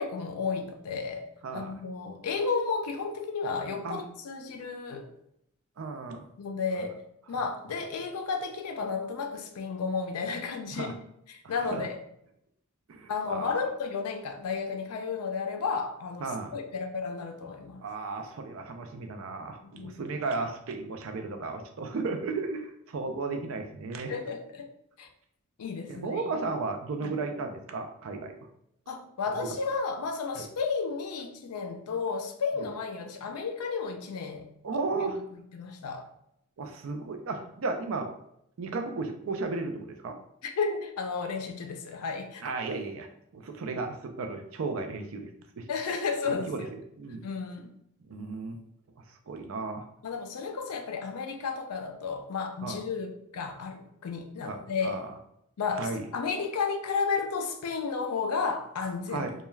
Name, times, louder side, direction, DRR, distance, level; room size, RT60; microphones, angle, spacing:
voice 1, 0.0-1.3 1.5-5.1 6.4-7.0 7.3-11.0 11.3-12.0 13.1-17.8 19.6-20.1 24.1-24.7 25.0-25.1 25.6-26.2 27.0-27.1 28.9-34.5 35.0-35.1 35.3-36.1 40.4-42.4 45.7-46.7 47.2-47.7 50.0-55.0 55.6-59.3, left 5 dB, 85° left, 5 dB, 0.4 m, -33 dB
voice 2, 1.4-1.7 3.8-4.1 5.8-6.3 7.3-7.4 10.7-10.9 11.4-11.8 12.9-13.7 16.2-16.6 17.8-24.1 25.9-28.5 29.4-29.5 30.4-30.5 34.6-35.2 36.6-38.1 38.6-40.2 42.4-43.1 43.3-45.3 45.6-45.7 46.3-46.7 47.0-47.2 48.0-48.6 49.1-49.9 52.6-52.8 54.4-55.1 55.7-56.1 59.1-59.3, right 3 dB, 60° right, 5 dB, 0.4 m, -34 dB
2.2 x 2.2 x 3.1 m, 0.75 s
head